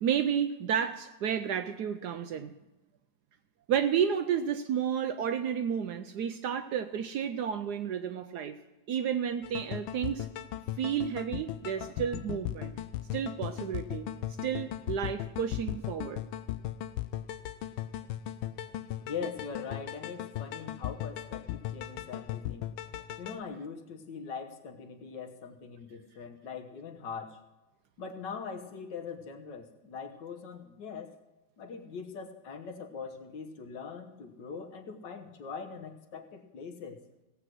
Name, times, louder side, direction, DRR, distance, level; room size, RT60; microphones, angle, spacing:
voice 1, 0.0-2.5 3.7-8.6 8.9-10.3 10.8-12.7 13.1-14.1 14.4-16.2, right 8 dB, 70° right, 9 dB, 1.0 m, -31 dB
sound 1, 9.4-23.4, left 12 dB, 85° left, 1.4 m, -38 dB
voice 2, 19.0-22.8 23.2-27.4 28.0-31.1 31.6-37.0, left 5 dB, 65° left, 6 dB, 1.8 m, -42 dB
16.5 x 8.1 x 6.1 m, 1.1 s
omnidirectional pair, 2.1 m